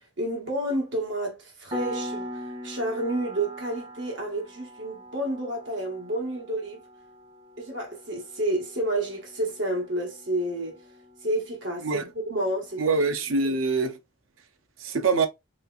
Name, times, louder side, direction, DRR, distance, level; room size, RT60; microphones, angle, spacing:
voice 1, 0.2-6.8 7.6-10.8 11.2-12.8 13.4-13.6, right 1 dB, 65° right, 1.4 m, -30 dB
Piano, 1.7-12.1, equal, 25° right, 1.4 m, -41 dB
voice 2, 12.8-14.0 14.8-15.3, right 4 dB, 85° right, 0.6 m, -24 dB
3.5 x 3.1 x 2.3 m
head